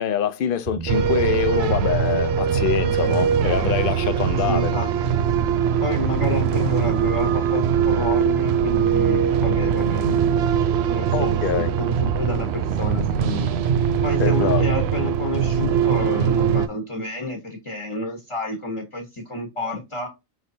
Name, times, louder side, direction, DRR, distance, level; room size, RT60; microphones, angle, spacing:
voice 1, 0.0-4.7 11.1-11.7 14.2-14.6, left 9 dB, 65° left, 0.8 m, -25 dB
sound 1, 0.7-15.2, right 8 dB, 55° right, 0.5 m, -32 dB
sound 2, 0.9-16.7, right 7 dB, 90° right, 0.8 m, -22 dB
voice 2, 4.5-5.1 5.8-10.2 10.9-13.5 14.0-20.1, left 1 dB, 30° left, 1.0 m, -29 dB
5.0 x 3.2 x 2.7 m
omnidirectional pair, 1.1 m